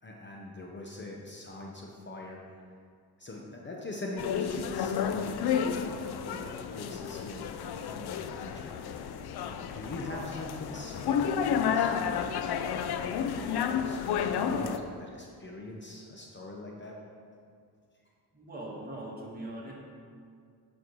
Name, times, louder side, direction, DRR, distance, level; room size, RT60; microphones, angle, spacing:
voice 1, 0.0-2.6 3.2-5.4 5.7-7.5 7.8-9.2 9.4-12.2 12.7-13.0 13.3-17.0, left 2 dB, 30° left, -1 dB, 0.9 m, -42 dB
sound 1, 4.2-14.8, left 7 dB, 80° left, 0.6 m, -31 dB
voice 2, 6.3-6.6 18.3-19.7, right 1 dB, 25° right, -4 dB, 2.0 m, -41 dB
8.6 x 6.5 x 4.7 m, 2.2 s
cardioid pair, 115°, 39 cm